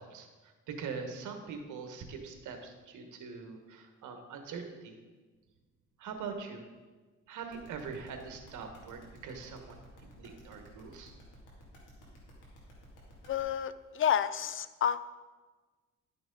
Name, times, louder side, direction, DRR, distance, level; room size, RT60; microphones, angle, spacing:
voice 1, 0.0-5.0 6.0-6.6 7.3-9.8 10.1-11.1, right 5 dB, 80° right, 5 dB, 1.4 m, -43 dB
sound 1, 7.5-13.4, equal, 90° left, 2.4 m, -55 dB
voice 2, 13.3-15.0, left 9 dB, 45° left, 15 dB, 0.5 m, -30 dB
11.0 x 6.1 x 3.9 m, 1.3 s
cardioid pair, 90°, 30 cm